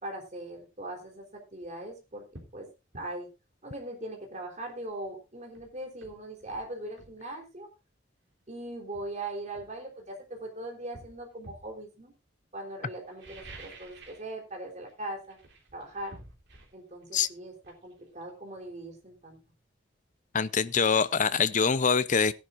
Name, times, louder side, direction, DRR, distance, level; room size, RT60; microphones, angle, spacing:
voice 1, 0.0-2.3 2.5-2.7 2.9-3.3 3.6-7.7 8.5-12.1 12.5-15.4 15.7-16.1 16.7-17.5 17.8-19.4, right 1 dB, 40° right, 3.7 m, -40 dB
sound 1, 1.5-1.7 2.3-2.6 2.9-3.1 5.0-5.1 5.5-7.2 8.3-8.4 8.9-10.3 10.9-11.7 13.0-14.3 14.6-14.9 15.2-18.8 19.1-19.2, right 2 dB, 60° right, 3.4 m, -51 dB
voice 2, 20.3-22.3, left 6 dB, 40° left, 0.6 m, -24 dB
17.5 x 11.0 x 2.6 m
head